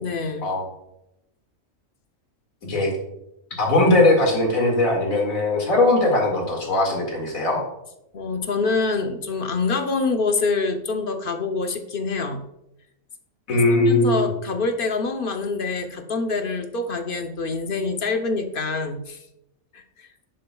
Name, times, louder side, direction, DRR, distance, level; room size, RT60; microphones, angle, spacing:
voice 1, 0.0-0.5 8.1-12.5 13.5-19.2 19.7-20.1, left 4 dB, 50° left, 5 dB, 0.8 m, -26 dB
voice 2, 3.6-7.6 13.5-14.3, left 2 dB, 85° left, 0 dB, 2.4 m, -19 dB
11.0 x 7.6 x 2.3 m, 0.86 s
omnidirectional pair, 1.4 m